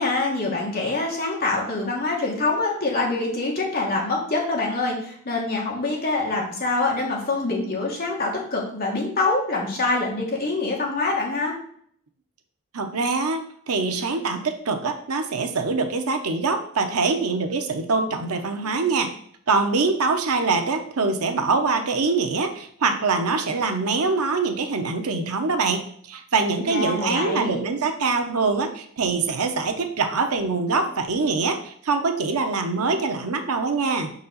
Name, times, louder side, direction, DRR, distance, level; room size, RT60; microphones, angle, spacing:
voice 1, 0.0-11.5 26.6-27.6, left 3 dB, 45° left, -2 dB, 1.6 m, -25 dB
voice 2, 12.7-13.4 13.7-19.1 19.5-34.1, right 4 dB, 80° right, 5 dB, 0.8 m, -24 dB
5.8 x 4.2 x 4.0 m, 0.63 s
head